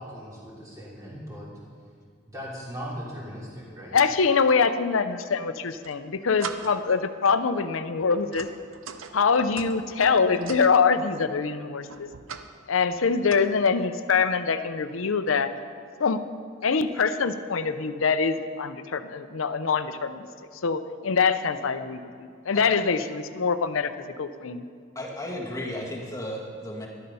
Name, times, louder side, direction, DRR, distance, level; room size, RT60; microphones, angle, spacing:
voice 1, 0.0-1.6 2.3-4.0, equal, 15° right, -6 dB, 3.0 m, -38 dB
voice 2, 3.9-8.5 9.1-12.1 12.7-15.5 16.0-16.2 16.6-20.3 20.6-23.9 24.2-24.6, left 5 dB, 85° left, 11 dB, 0.6 m, -24 dB
sound 1, 5.6-6.0 6.4-6.9 7.3-7.5 8.0-10.8 11.9-12.5 12.8-13.4, right 6 dB, 85° right, 0.7 m, -40 dB
voice 3, 22.5-22.9 24.9-26.9, left 1 dB, 15° left, -2 dB, 1.7 m, -34 dB
13.0 x 11.5 x 5.5 m, 2.2 s
head